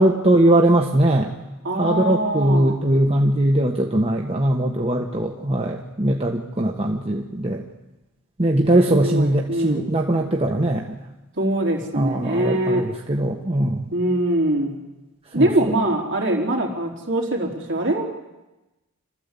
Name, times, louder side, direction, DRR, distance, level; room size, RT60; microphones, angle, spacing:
voice 1, 0.0-1.4 1.8-7.6 8.4-10.8 11.9-13.9 15.4-15.5, right 1 dB, 25° right, 0 dB, 1.3 m, -20 dB
voice 2, 1.6-2.8 8.9-9.9 11.4-12.9 13.9-14.8 15.3-18.1, right 1 dB, 55° right, 1 dB, 4.1 m, -23 dB
27.0 x 13.5 x 8.4 m, 1.1 s
head